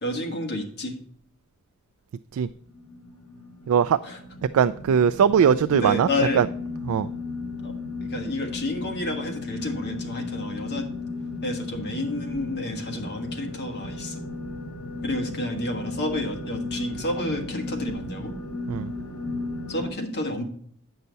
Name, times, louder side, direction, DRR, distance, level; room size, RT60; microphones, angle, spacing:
voice 1, 0.0-0.9 4.0-4.2 5.5-6.4 7.6-7.7 8.1-10.9 11.4-14.2 15.0-18.3 19.7-20.4, left 1 dB, 50° left, 3 dB, 1.4 m, -30 dB
sound 1, 2.6-19.9, left 2 dB, 85° left, 1.5 m, -35 dB
voice 2, 3.7-4.0 4.5-6.1 6.4-6.5 6.9-7.1 18.7-18.9, right 7 dB, 70° right, 13 dB, 0.3 m, -20 dB
9.4 x 5.6 x 4.0 m, 0.64 s
head